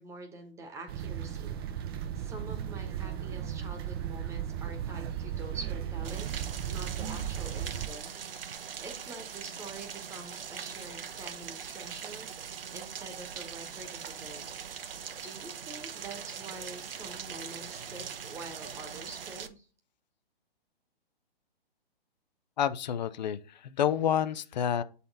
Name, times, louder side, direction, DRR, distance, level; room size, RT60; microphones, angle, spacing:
voice 1, 0.0-1.6 1.9-14.7 15.2-19.7, right 3 dB, 10° right, 1.1 m, -46 dB
sound 1, 0.9-7.9, right 9 dB, 25° right, 0.5 m, -36 dB
Rain, 6.0-19.5, right 7 dB, 65° right, 0.8 m, -41 dB
voice 2, 22.6-24.8, left 9 dB, 45° left, 0.5 m, -29 dB
7.4 x 4.2 x 3.9 m
figure-of-eight pair, 130°, 30 cm